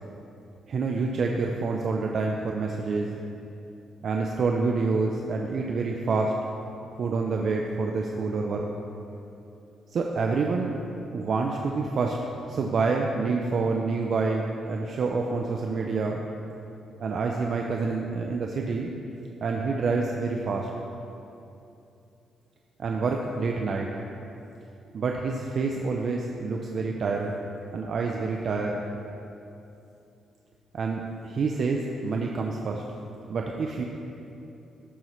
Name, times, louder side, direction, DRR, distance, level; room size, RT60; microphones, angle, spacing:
voice 1, 0.7-3.2 4.0-6.4 7.0-8.7 9.9-10.8 11.1-12.2 12.5-16.2 17.0-18.9 19.4-20.7 22.8-23.9 24.9-27.4 27.7-28.8 30.7-32.8 33.3-33.8, right 4 dB, 55° right, 1 dB, 0.5 m, -27 dB
12.5 x 5.5 x 3.1 m, 2.8 s
cardioid pair, 110°, 0 cm